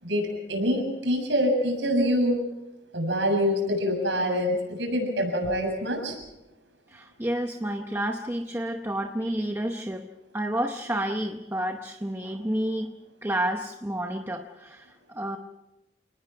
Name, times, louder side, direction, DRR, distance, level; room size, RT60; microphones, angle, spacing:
voice 1, 0.0-2.4 2.9-6.2, equal, 70° right, 3 dB, 7.3 m, -25 dB
voice 2, 6.9-10.1 10.3-12.9 13.2-15.4, right 1 dB, 10° right, 5 dB, 0.8 m, -30 dB
29.0 x 19.5 x 5.9 m, 0.99 s
head